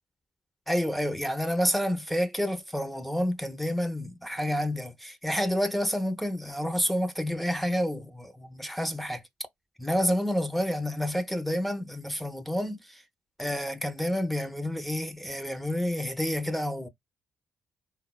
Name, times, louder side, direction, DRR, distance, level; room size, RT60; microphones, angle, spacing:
voice 1, 0.7-9.2 9.8-13.0 13.4-16.9, equal, ahead, 0.6 m, -29 dB
3.7 x 2.1 x 2.2 m
hypercardioid pair, 45°, 5 cm